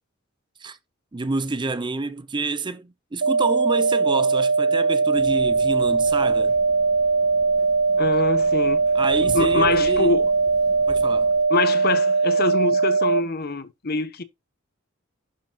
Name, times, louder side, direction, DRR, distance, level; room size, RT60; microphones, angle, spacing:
voice 1, 1.1-6.6 8.9-10.1 10.9-11.3, right 3 dB, 25° right, 0.5 m, -28 dB
sound 1, 3.2-13.2, right 4 dB, 70° right, 0.5 m, -20 dB
sound 2, 5.1-11.4, left 1 dB, 80° left, 3.6 m, -43 dB
voice 2, 8.0-8.8 9.3-10.3 11.5-14.2, left 3 dB, 50° left, 0.9 m, -24 dB
11.5 x 5.0 x 2.2 m
head